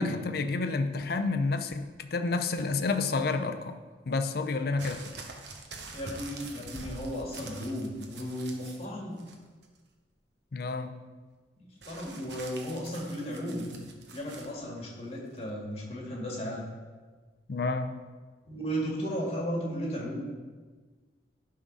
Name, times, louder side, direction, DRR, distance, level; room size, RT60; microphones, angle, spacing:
voice 1, 0.0-3.8 4.1-5.1 10.5-11.0 17.5-18.0, left 3 dB, 60° left, 8 dB, 0.5 m, -30 dB
sound 1, 4.8-8.9 9.2-9.8 11.8-14.5 15.4-15.5, right 3 dB, 75° right, 1.0 m, -45 dB
voice 2, 5.9-9.2 11.9-13.7 14.1-16.6 18.5-20.3, equal, 35° left, -2 dB, 1.9 m, -35 dB
11.0 x 3.8 x 5.4 m, 1.4 s
head